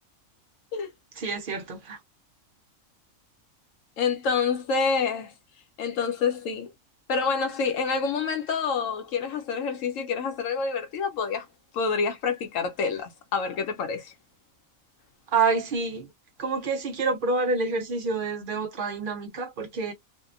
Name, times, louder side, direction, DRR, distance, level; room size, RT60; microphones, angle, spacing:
voice 1, 1.2-2.0 15.3-16.1 16.4-19.9, right 4 dB, 55° right, 0.6 m, -27 dB
voice 2, 4.0-5.3 5.8-6.7 7.1-11.4 11.7-14.1, left 5 dB, 75° left, 1.0 m, -27 dB
2.6 x 2.1 x 2.4 m
omnidirectional pair, 1.4 m